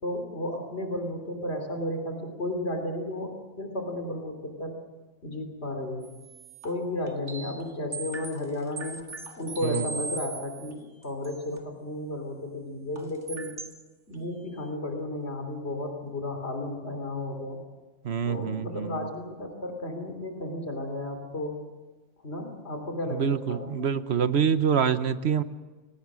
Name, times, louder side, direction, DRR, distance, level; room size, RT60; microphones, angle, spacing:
voice 1, 0.0-3.3 3.6-4.8 5.2-6.1 6.6-9.0 9.4-13.5 14.1-17.6 18.3-21.6 22.2-23.9, left 1 dB, 65° left, 5 dB, 3.6 m, -33 dB
sound 1, 6.0-7.6 7.9-10.7 11.0-11.6 13.0-13.8 14.1-14.2, right 4 dB, 85° right, 2.2 m, -40 dB
voice 2, 18.0-19.1 23.1-25.4, right 7 dB, 65° right, 12 dB, 1.2 m, -26 dB
29.0 x 19.5 x 6.3 m, 1.2 s
omnidirectional pair, 1.2 m